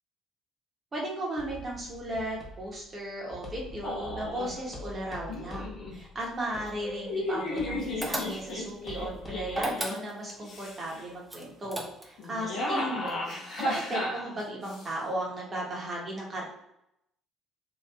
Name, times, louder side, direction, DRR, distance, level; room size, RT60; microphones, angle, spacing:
voice 1, 0.9-16.4, right 1 dB, 35° right, -3 dB, 1.0 m, -36 dB
sound 1, 1.4-9.6, left 1 dB, 20° left, 0.8 m, -46 dB
sound 2, 3.8-4.6 5.3-5.9 6.8-10.0 10.4-11.0 12.2-14.9, left 1 dB, 55° left, 0.8 m, -34 dB
sound 3, 8.0-8.7 9.5-10.4 11.3-12.3, right 1 dB, 15° right, 0.6 m, -34 dB
3.1 x 2.4 x 2.2 m, 0.81 s
hypercardioid pair, 50°, 0 cm